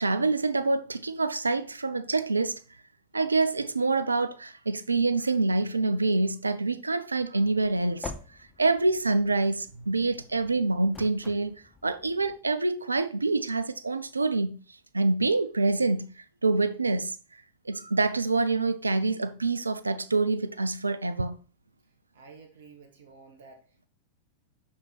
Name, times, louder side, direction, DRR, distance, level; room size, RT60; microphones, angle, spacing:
voice 1, 0.0-2.6 3.1-8.1 8.6-14.6 14.9-16.1 16.4-17.2 17.7-21.4, right 3 dB, 80° right, 0.5 m, -26 dB
sound 1, 7.3-12.4, left 4 dB, 20° left, 0.8 m, -47 dB
voice 2, 22.1-23.9, right 4 dB, 60° right, 1.7 m, -51 dB
5.9 x 5.3 x 4.0 m
figure-of-eight pair, 90°, 0 cm